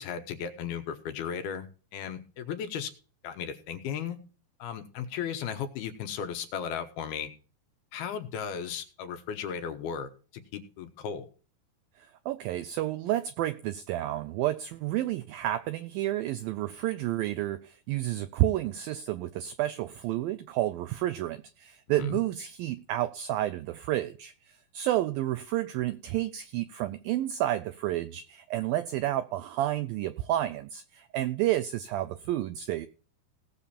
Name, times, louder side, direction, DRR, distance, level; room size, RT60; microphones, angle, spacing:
voice 1, 0.0-2.9 3.2-4.2 4.6-7.3 7.9-11.3 22.0-22.2, left 7 dB, 70° left, 2.8 m, -36 dB
voice 2, 12.0-24.3 24.7-32.9, right 14 dB, 85° right, 2.0 m, -30 dB
18.0 x 7.0 x 4.3 m
omnidirectional pair, 4.9 m